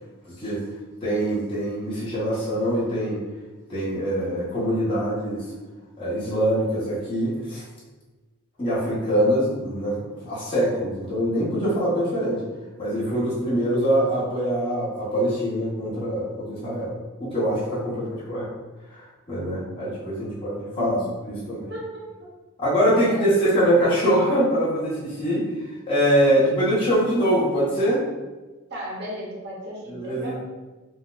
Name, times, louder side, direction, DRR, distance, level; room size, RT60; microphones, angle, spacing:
voice 1, 1.0-3.2 3.7-5.5 6.0-7.6 8.6-10.0 10.2-12.4 12.8-16.9 17.2-18.5 18.9-21.0 21.3-21.7 22.6-25.5 25.9-28.0 29.9-30.4, equal, 25° left, -9 dB, 1.0 m, -23 dB
voice 2, 20.8-21.1 21.7-22.3 23.1-23.3 26.3-27.2 28.7-30.4, equal, 50° right, -5 dB, 0.9 m, -36 dB
4.0 x 2.2 x 2.4 m, 1.2 s
head